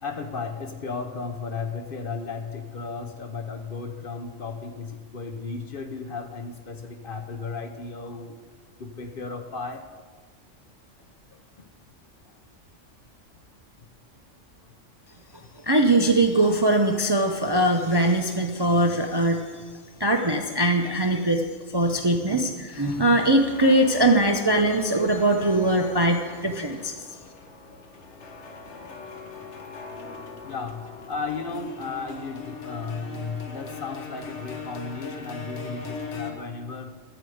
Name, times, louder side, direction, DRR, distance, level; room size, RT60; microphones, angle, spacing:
voice 1, 0.0-8.3 8.8-9.9 11.3-11.7 15.4-15.5 27.6-27.8 28.2-28.3 28.8-28.9 29.9-30.0 30.4-36.9, left 4 dB, 50° left, 6 dB, 0.9 m, -35 dB
voice 2, 15.6-19.4 20.0-21.4 21.7-26.9, right 1 dB, 30° right, 3 dB, 0.5 m, -21 dB
sound 1, 22.4-36.3, left 4 dB, 65° left, 1.4 m, -40 dB
14.0 x 5.0 x 7.8 m, 1.4 s
omnidirectional pair, 1.3 m